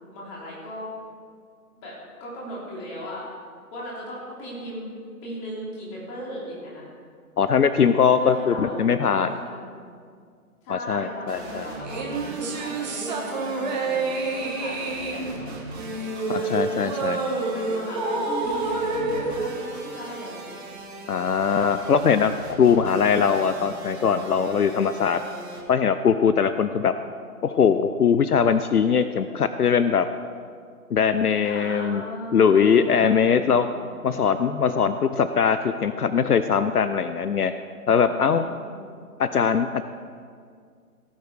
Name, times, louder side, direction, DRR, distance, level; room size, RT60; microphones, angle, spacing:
voice 1, 0.1-0.9 1.8-1.9 2.2-3.3 3.7-4.9 5.2-6.8 8.2-9.9 10.6-15.5 16.2-16.5 17.4-20.6 20.9-21.5 23.4-23.8 26.6-27.0 31.4-33.9 38.0-38.9, equal, 20° left, -5 dB, 3.1 m, -37 dB
voice 2, 7.4-9.3 10.7-11.7 16.3-17.2 21.1-22.3 22.6-25.2 25.7-26.9 27.4-30.1 30.9-32.0 32.3-33.7 34.0-37.5 37.9-38.5 39.2-39.8, left 6 dB, 75° left, 11 dB, 0.6 m, -21 dB
sound 1, 11.3-25.6, right 2 dB, 45° right, 2.3 m, -40 dB
sound 2, 11.8-20.4, right 3 dB, 30° right, 1.4 m, -28 dB
17.5 x 7.5 x 4.7 m, 2.1 s
figure-of-eight pair, 140°, 45 cm